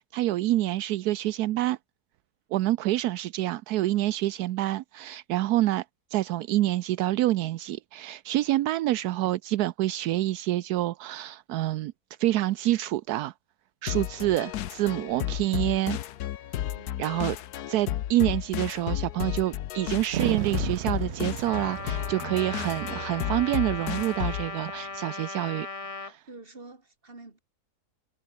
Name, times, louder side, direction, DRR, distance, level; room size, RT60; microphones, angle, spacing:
voice 1, 0.1-1.8 2.5-5.8 6.1-11.9 12.2-13.3 13.8-16.0 17.0-17.4 17.7-25.7 26.0-26.2, right 15 dB, 80° right, 1.1 m, -27 dB
sound 1, 13.9-24.5, left 12 dB, 75° left, 1.3 m, -33 dB
sound 2, 20.1-24.7, right 11 dB, 60° right, 0.8 m, -36 dB
Trumpet, 21.5-26.1, left 3 dB, 25° left, 1.2 m, -37 dB
voice 2, 26.2-27.4, right 3 dB, 35° right, 3.3 m, -48 dB
omnidirectional pair, 1.7 m